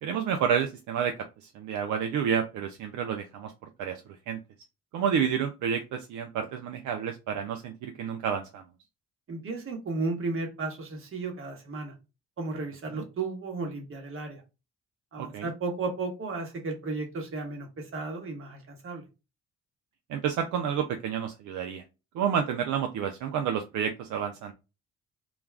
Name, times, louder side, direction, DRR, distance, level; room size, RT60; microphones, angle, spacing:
voice 1, 0.0-1.1 1.4-3.5 3.8-4.0 4.3-4.4 4.9-8.6 12.9-13.0 15.2-15.5 20.1-21.8 22.1-24.5, right 8 dB, 75° right, 5 dB, 0.5 m, -29 dB
voice 2, 9.3-11.9 12.4-14.4 15.1-19.0, right 3 dB, 45° right, 2 dB, 1.1 m, -34 dB
2.4 x 2.2 x 3.2 m, 0.28 s
cardioid pair, 90°, 30 cm